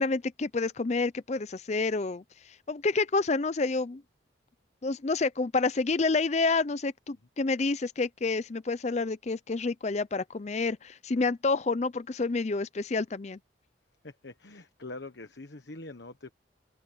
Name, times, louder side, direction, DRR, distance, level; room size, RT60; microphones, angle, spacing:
voice 1, 0.0-4.0 4.8-13.4, left 3 dB, 35° left, 0.5 m, -29 dB
voice 2, 14.0-16.3, left 2 dB, 60° left, 1.3 m, -44 dB
open air
head